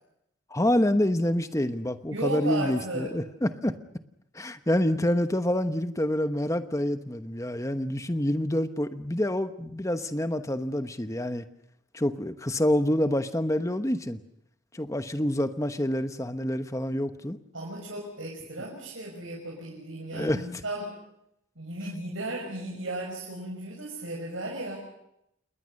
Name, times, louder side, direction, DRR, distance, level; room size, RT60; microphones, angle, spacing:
voice 1, 0.5-3.7 4.3-11.5 11.9-14.2 14.7-17.4 20.1-20.6, left 1 dB, 15° left, 10 dB, 1.0 m, -27 dB
voice 2, 2.1-3.1 17.5-20.9 21.6-24.8, right 1 dB, 80° right, -2 dB, 6.1 m, -35 dB
28.5 x 21.0 x 6.5 m, 0.80 s
head